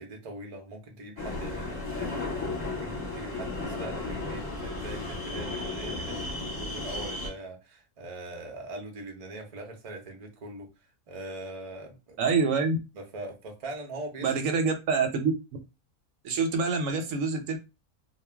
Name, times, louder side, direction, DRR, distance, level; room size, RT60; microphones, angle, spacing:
voice 1, 0.0-10.7 11.1-12.2 12.9-14.3, right 2 dB, 50° right, 0.4 m, -41 dB
sound 1, 1.2-7.3, left 2 dB, 25° left, 1.0 m, -34 dB
voice 2, 12.2-12.8 14.2-15.3 16.2-17.6, right 4 dB, 70° right, 0.9 m, -26 dB
2.4 x 2.1 x 3.3 m
omnidirectional pair, 1.6 m